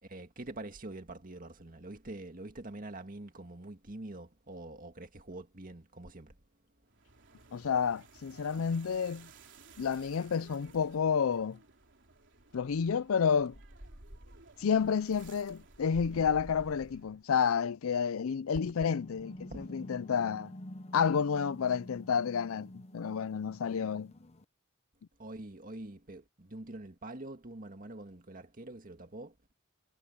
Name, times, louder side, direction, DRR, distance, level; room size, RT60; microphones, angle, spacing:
voice 1, 0.0-6.4 9.7-9.8 19.5-19.7 25.2-29.4, right 2 dB, 40° right, 1.9 m, -45 dB
sound 1, 6.9-17.3, right 2 dB, 60° right, 3.5 m, -54 dB
voice 2, 7.5-9.3 9.8-11.6 12.5-13.6 14.6-20.5 20.9-24.1, left 6 dB, 80° left, 0.5 m, -30 dB
sound 2, 18.8-24.4, left 1 dB, 30° left, 0.9 m, -48 dB
head